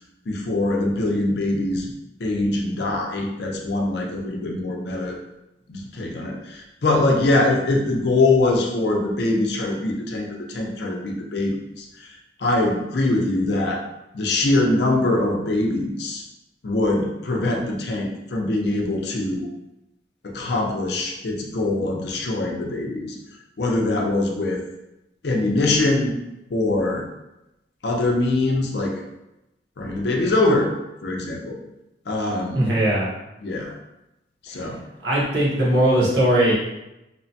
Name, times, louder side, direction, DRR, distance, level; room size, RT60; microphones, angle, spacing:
voice 1, 0.3-1.9 2.2-5.2 5.7-13.8 14.1-16.2 16.6-19.5 20.2-23.2 23.6-24.6 25.2-26.2 26.5-27.0 27.8-29.0 29.8-30.7 31.0-31.6 32.1-32.7 33.4-33.7 34.4-34.8, left 2 dB, 60° left, 0 dB, 0.5 m, -23 dB
voice 2, 32.5-33.1 35.0-36.5, right 1 dB, 65° right, -6 dB, 0.9 m, -19 dB
2.9 x 2.1 x 2.7 m, 0.92 s
head